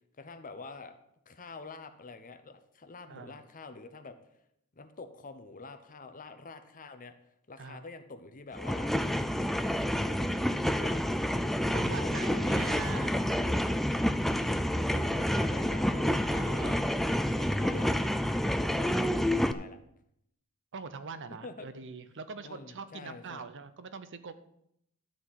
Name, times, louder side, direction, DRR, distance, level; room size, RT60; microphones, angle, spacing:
voice 1, 0.2-1.0 1.3-4.2 4.8-11.0 11.9-13.6 14.4-16.9 17.3-19.8 21.3-21.7 22.4-23.4, left 3 dB, 35° left, 9 dB, 0.8 m, -47 dB
voice 2, 3.1-3.4 7.6-7.8 11.7-13.1 16.3-16.9 20.7-24.3, right 5 dB, 55° right, 12 dB, 0.7 m, -42 dB
sound 1, 8.5-19.5, equal, ahead, 0.3 m, -29 dB
12.5 x 4.3 x 7.4 m, 0.76 s
head